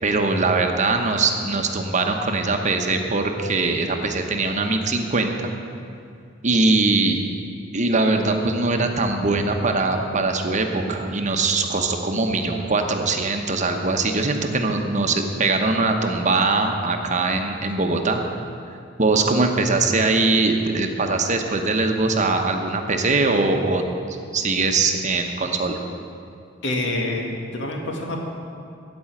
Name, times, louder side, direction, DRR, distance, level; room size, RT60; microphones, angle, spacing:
voice 1, 0.0-5.5 6.4-7.2 7.7-18.2 19.0-23.8 24.1-25.8, right 3 dB, 40° right, 4 dB, 1.0 m, -21 dB
voice 2, 26.6-28.2, left 2 dB, 65° left, 1 dB, 1.9 m, -26 dB
15.5 x 5.4 x 9.0 m, 2.4 s
head